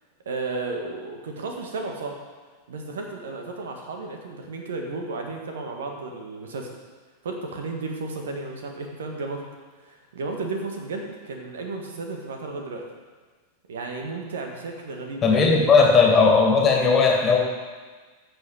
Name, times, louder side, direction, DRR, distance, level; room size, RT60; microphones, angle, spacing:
voice 1, 0.2-2.2 2.7-6.7 7.2-9.4 9.8-12.8 13.7-15.5, right 3 dB, 65° right, 2 dB, 1.6 m, -33 dB
voice 2, 15.2-17.4, left 4 dB, 25° left, 0 dB, 2.2 m, -17 dB
14.0 x 6.6 x 5.0 m, 1.4 s
figure-of-eight pair, 90°, 0 cm